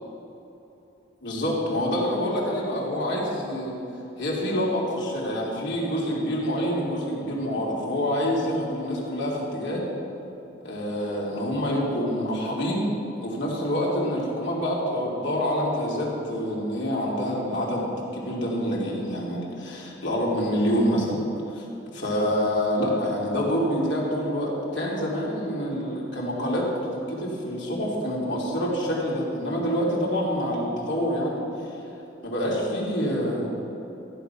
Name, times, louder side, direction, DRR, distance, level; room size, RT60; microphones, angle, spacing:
voice 1, 1.2-3.7 4.2-9.8 10.6-12.9 13.2-21.3 21.5-21.7 21.9-31.4 32.2-33.5, equal, 65° left, -4 dB, 3.0 m, -27 dB
14.5 x 9.4 x 5.8 m, 2.9 s
head